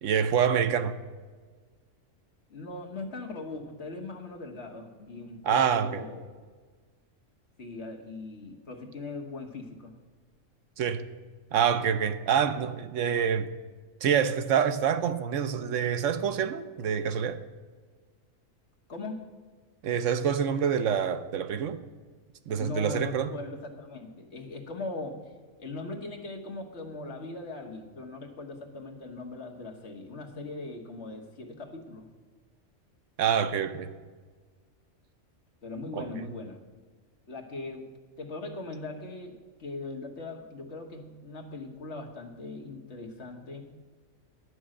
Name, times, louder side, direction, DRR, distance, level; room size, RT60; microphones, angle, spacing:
voice 1, 0.0-0.9 5.5-6.0 10.8-11.0 11.5-13.5 14.0-17.4 19.8-21.8 22.5-23.3 33.2-33.9 35.9-36.0, right 8 dB, 75° right, 1.0 m, -26 dB
voice 2, 2.5-6.3 7.6-9.9 18.9-19.3 22.6-25.3 25.6-32.1 35.6-36.6 37.3-37.9 38.2-43.7, left 2 dB, 60° left, 1.6 m, -40 dB
11.0 x 6.2 x 7.6 m
omnidirectional pair, 1.3 m